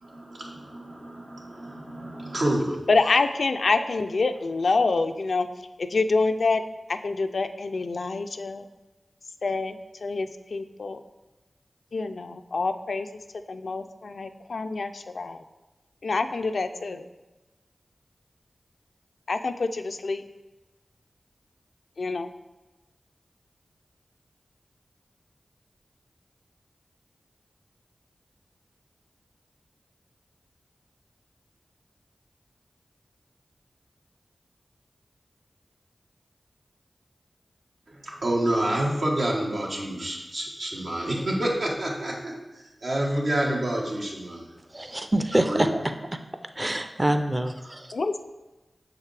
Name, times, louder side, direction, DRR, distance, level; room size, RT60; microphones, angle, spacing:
voice 1, 0.0-2.8 37.9-42.3 42.8-44.5 45.4-45.8, right 1 dB, 85° right, -3 dB, 1.3 m, -28 dB
voice 2, 2.9-5.5 5.8-6.6 6.9-8.6 9.4-11.0 11.9-13.1 13.5-15.4 16.0-17.0 19.3-20.2 22.0-22.3 47.9-48.2, left 3 dB, 80° left, 9 dB, 0.3 m, -26 dB
voice 3, 44.7-45.7 46.6-47.9, right 1 dB, 25° right, 7 dB, 0.4 m, -25 dB
6.4 x 4.8 x 3.3 m, 1.1 s
cardioid pair, 45°, 0 cm